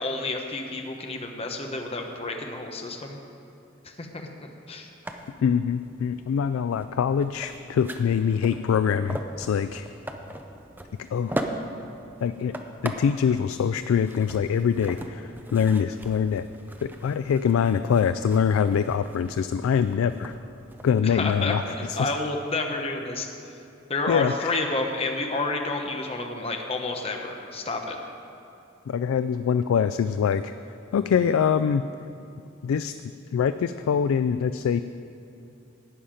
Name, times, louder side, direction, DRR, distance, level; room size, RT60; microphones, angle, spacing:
voice 1, 0.0-3.2 3.8-4.3 4.7-4.9 21.0-23.3 23.9-27.9, left 2 dB, 30° left, 3 dB, 0.9 m, -30 dB
sound 1, 5.0-21.1, right 1 dB, 10° right, 0.5 m, -40 dB
voice 2, 5.4-9.9 11.1-11.4 12.2-12.5 12.8-16.5 17.0-20.3 20.8-21.6 21.9-22.1 24.1-24.5 28.9-30.5 30.9-31.8 32.6-32.9 33.3-34.8, left 7 dB, 90° left, 11 dB, 0.3 m, -24 dB
11.5 x 5.6 x 8.8 m, 2.8 s
head